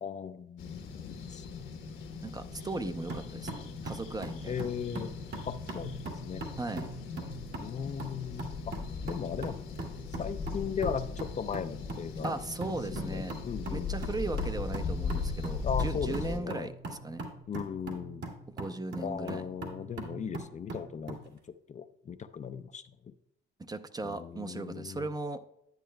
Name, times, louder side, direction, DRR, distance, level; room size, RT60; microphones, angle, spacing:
voice 1, 0.0-1.8 4.5-5.1 5.5-6.4 7.6-8.8 9.0-9.7 10.2-12.3 12.9-13.9 15.6-16.7 17.5-18.3 19.0-21.4 21.7-23.1 24.0-25.1, left 7 dB, 40° left, 10 dB, 0.4 m, -37 dB
sound 1, 0.6-16.4, left 4 dB, 75° left, 1.2 m, -39 dB
voice 2, 2.2-4.5 6.6-6.9 12.2-13.4 13.7-17.3 18.6-19.4 23.6-25.4, right 2 dB, 20° right, 9 dB, 0.6 m, -37 dB
sound 2, 3.1-21.3, right 2 dB, 60° right, 2.1 m, -42 dB
10.5 x 9.1 x 2.2 m, 0.82 s
cardioid pair, 90°, 20 cm